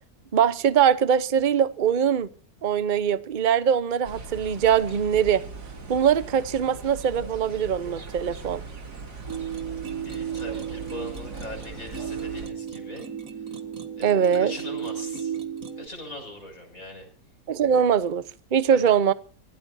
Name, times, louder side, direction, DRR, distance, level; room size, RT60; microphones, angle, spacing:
voice 1, 0.3-2.3 2.6-5.4 5.9-8.6 14.0-14.5 17.5-18.2 18.5-19.1, right 8 dB, 40° right, 0.8 m, -22 dB
sound 1, 4.0-12.5, right 4 dB, 70° right, 3.1 m, -40 dB
sound 2, 9.3-15.9, right 8 dB, 55° right, 2.1 m, -34 dB
voice 2, 10.0-13.0 14.0-15.3 15.8-17.1 18.7-18.9, left 1 dB, 55° left, 7.2 m, -40 dB
25.0 x 16.5 x 2.7 m
omnidirectional pair, 1.7 m